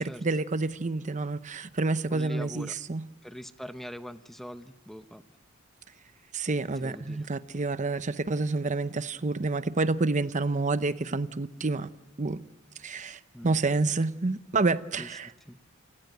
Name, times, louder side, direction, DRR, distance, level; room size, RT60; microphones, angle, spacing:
voice 1, 0.0-3.0 6.3-11.9 12.2-12.4 12.8-15.3, right 3 dB, 35° right, 0.7 m, -28 dB
voice 2, 2.1-2.7 3.2-5.2 6.8-7.3 13.3-13.6 15.0-15.1 15.5-15.6, equal, ahead, 0.7 m, -42 dB
29.0 x 17.5 x 9.2 m
head